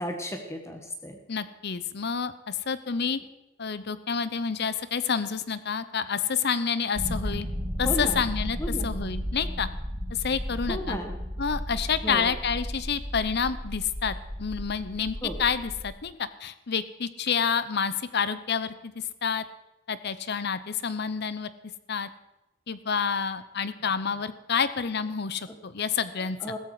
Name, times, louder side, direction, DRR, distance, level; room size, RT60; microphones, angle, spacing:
voice 1, 0.0-1.2 7.8-8.2 8.6-8.9 10.7-11.2 12.0-12.3 15.2-15.4 25.5-25.6 26.2-26.6, equal, 15° left, 4 dB, 1.5 m, -34 dB
voice 2, 1.3-3.2 3.6-7.5 7.8-8.6 8.8-9.7 10.1-11.0 11.4-18.9 19.2-19.4 19.9-21.5 21.9-22.1 22.7-26.4, left 6 dB, 55° left, 14 dB, 0.8 m, -28 dB
sound 1, 6.9-15.9, equal, 25° right, 3.2 m, -34 dB
15.5 x 13.5 x 4.9 m, 0.97 s
head